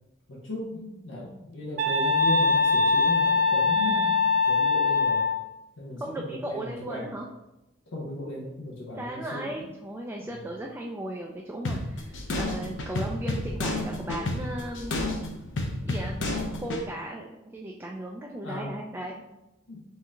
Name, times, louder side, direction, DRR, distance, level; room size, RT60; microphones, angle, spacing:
voice 1, 0.3-4.2 4.5-5.3 5.8-7.1 7.9-9.6 10.2-10.4 18.4-18.8 19.7-19.8, left 1 dB, 90° left, -5 dB, 1.0 m, -36 dB
sound 1, 1.8-5.4, left 4 dB, 85° right, 0.4 m, -22 dB
voice 2, 6.0-7.3 9.0-15.1 15.8-16.2 16.5-19.1, right 1 dB, 10° right, -1 dB, 0.3 m, -36 dB
sound 2, 11.6-16.9, left 2 dB, 70° left, 0.6 m, -31 dB
4.3 x 2.7 x 3.6 m, 0.95 s
head